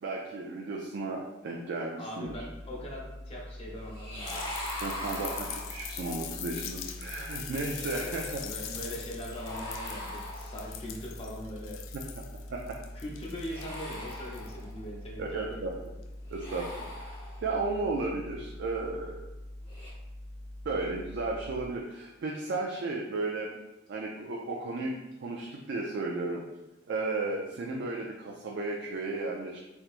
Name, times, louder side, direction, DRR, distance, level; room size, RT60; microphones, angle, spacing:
voice 1, 0.0-2.4 4.8-8.4 12.2-12.3 12.5-12.8 15.2-15.9 16.3-16.8 17.4-19.2 20.6-23.6 23.9-24.9 25.2-26.4 26.9-29.6, right 3 dB, 60° right, -1 dB, 0.4 m, -34 dB
voice 2, 2.0-4.5 7.7-11.8 12.9-15.7, left 1 dB, 30° left, -3 dB, 0.6 m, -41 dB
sound 1, 2.2-21.7, left 1 dB, 15° right, 0.8 m, -44 dB
sound 2, 3.9-6.1 9.3-10.9 13.3-14.9 16.2-17.6 19.6-19.9, left 1 dB, 50° left, 1.2 m, -41 dB
sound 3, 4.3-14.6 16.0-16.1, left 9 dB, 75° left, 0.4 m, -42 dB
3.3 x 2.9 x 2.4 m, 0.99 s
head